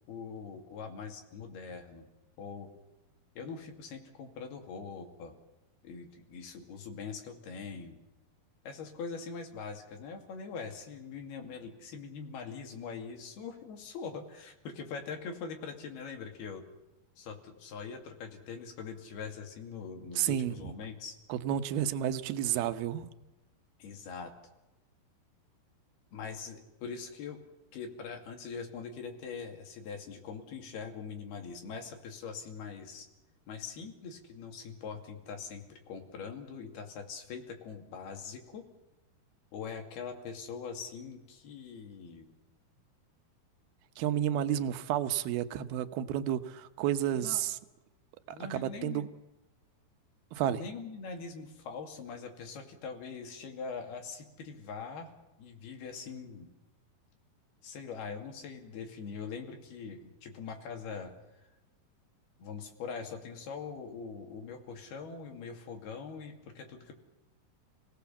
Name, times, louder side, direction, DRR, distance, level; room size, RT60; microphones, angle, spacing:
voice 1, 0.1-2.1 2.4-2.7 3.4-5.4 5.8-8.0 8.6-16.6 17.2-21.2 23.8-24.3 26.1-27.4 27.7-33.1 33.5-38.7 39.5-42.3 47.1-47.4 48.3-49.0 50.4-55.1 55.4-56.5 57.6-61.5 62.4-66.9, left 5 dB, 75° left, 4 dB, 4.5 m, -42 dB
voice 2, 20.2-20.6 21.3-23.1 44.0-47.6 48.5-49.1 50.3-50.6, right 11 dB, 75° right, 10 dB, 2.8 m, -31 dB
29.5 x 18.0 x 7.2 m, 1.0 s
omnidirectional pair, 4.6 m